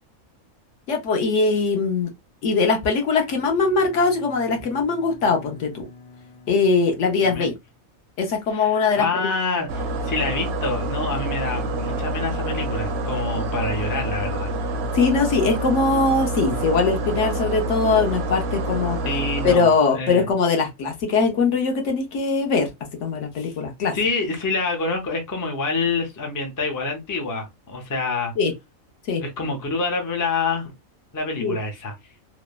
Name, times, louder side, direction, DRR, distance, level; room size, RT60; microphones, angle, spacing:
voice 1, 0.9-2.1 2.4-5.9 6.5-7.5 8.2-9.3 14.9-19.0 19.4-22.7 23.0-23.9 28.4-28.5 29.1-29.2 31.4-31.6, left 4 dB, 65° left, 1.0 m, -21 dB
Bowed string instrument, 3.2-7.9, left 3 dB, 90° left, 1.4 m, -47 dB
voice 2, 8.5-14.5 19.0-20.2 23.4-23.5 23.9-28.3 29.2-30.7 31.1-31.9, left 3 dB, 30° left, 0.3 m, -27 dB
sound 1, 9.7-19.6, right 1 dB, 65° right, 0.7 m, -27 dB
3.0 x 2.0 x 2.2 m
omnidirectional pair, 1.4 m